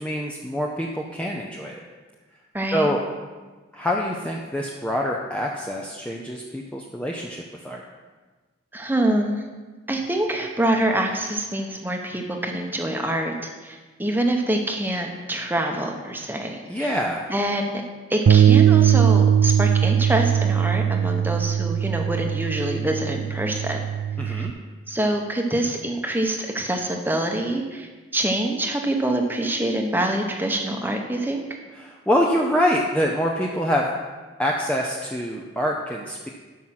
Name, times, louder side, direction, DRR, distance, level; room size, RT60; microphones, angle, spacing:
voice 1, 0.0-1.8 2.7-3.0 3.7-7.8 16.7-17.3 24.2-24.5 31.8-33.9 34.4-36.3, equal, 5° left, -1 dB, 0.6 m, -25 dB
voice 2, 2.5-2.9 8.7-9.4 9.9-13.3 13.6-17.0 17.3-17.8 18.1-23.8 24.3-24.5 24.9-31.4, right 1 dB, 10° right, 2 dB, 1.0 m, -25 dB
Bass guitar, 18.3-24.5, right 9 dB, 80° right, 0.3 m, -20 dB
12.5 x 5.8 x 5.9 m, 1.3 s
head